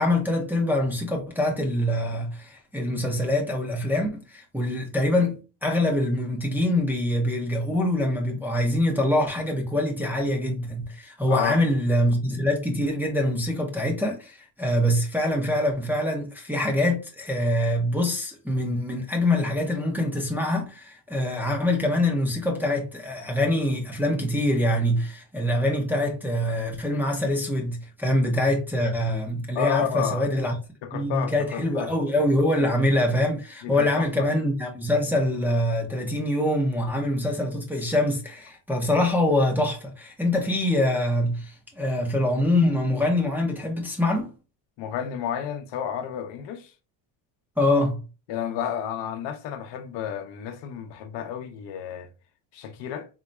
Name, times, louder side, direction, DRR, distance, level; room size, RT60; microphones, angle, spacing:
voice 1, 0.0-5.3 5.6-30.5 30.9-44.3 47.6-48.0, left 1 dB, 5° right, 0.6 m, -24 dB
voice 2, 29.5-30.3 30.8-31.9 32.6-32.7 33.6-34.3 44.8-46.7 48.3-52.1 52.5-53.1, left 9 dB, 60° left, 0.8 m, -31 dB
4.0 x 2.2 x 3.2 m
cardioid pair, 145°, 48 cm